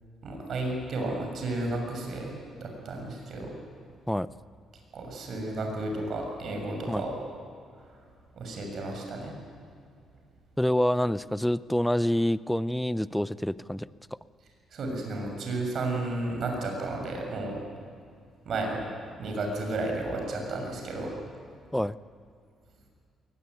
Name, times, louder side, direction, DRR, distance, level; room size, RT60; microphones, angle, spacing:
voice 1, 0.2-3.5 4.9-7.1 7.8-7.9 8.3-9.4 14.7-17.6 18.4-18.9 19.2-21.1, right 2 dB, 60° right, 2 dB, 6.7 m, -32 dB
voice 2, 10.6-13.9 21.7-22.0, left 1 dB, 5° left, 17 dB, 0.6 m, -26 dB
22.0 x 20.0 x 9.4 m, 2.3 s
cardioid pair, 90°, 0 cm